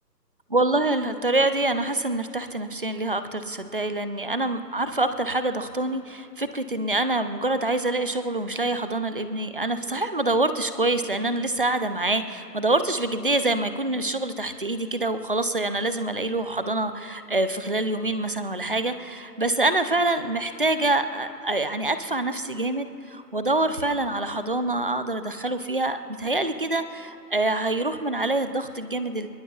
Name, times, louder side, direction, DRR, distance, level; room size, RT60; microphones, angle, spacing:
voice 1, 0.5-29.3, right 2 dB, 35° right, 10 dB, 0.5 m, -26 dB
25.5 x 22.0 x 2.3 m, 2.6 s
hypercardioid pair, 165°, 50 cm